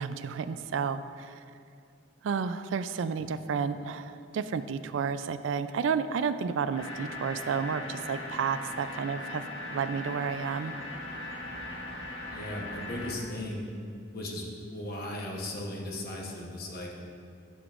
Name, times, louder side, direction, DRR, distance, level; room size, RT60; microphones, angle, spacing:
voice 1, 0.0-1.4 2.2-9.4 9.7-10.7, right 6 dB, 70° right, 12 dB, 0.3 m, -31 dB
sound 1, 6.8-13.1, left 2 dB, 90° left, 1.1 m, -39 dB
voice 2, 12.3-13.6 14.1-17.0, left 1 dB, 50° left, -1 dB, 1.0 m, -37 dB
10.5 x 6.8 x 2.5 m, 2.4 s
head